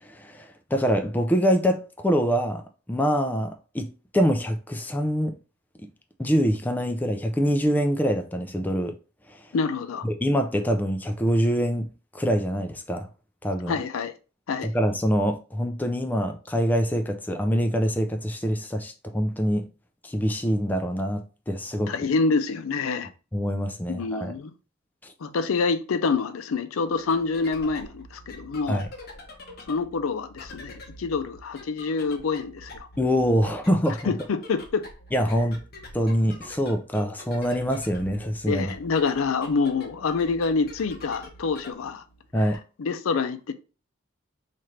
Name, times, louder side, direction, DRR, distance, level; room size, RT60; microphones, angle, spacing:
voice 1, 0.0-2.6 2.9-5.4 6.2-9.0 9.3-9.4 10.0-11.9 12.1-13.1 13.4-13.8 14.6-19.7 20.0-21.9 23.3-24.3 25.0-25.1 28.7-28.9 33.0-34.1 35.1-35.6 35.9-38.7 42.3-42.6, equal, 10° left, 0.3 m, -25 dB
voice 2, 9.5-10.0 13.7-14.1 14.5-14.7 21.9-23.1 23.9-24.5 25.2-28.8 29.7-32.9 34.1-34.9 38.4-42.0 42.4-42.5 42.8-43.5, left 4 dB, 85° left, 0.4 m, -26 dB
sound 1, 26.9-42.6, left 1 dB, 50° left, 0.9 m, -46 dB
4.3 x 2.5 x 3.1 m
head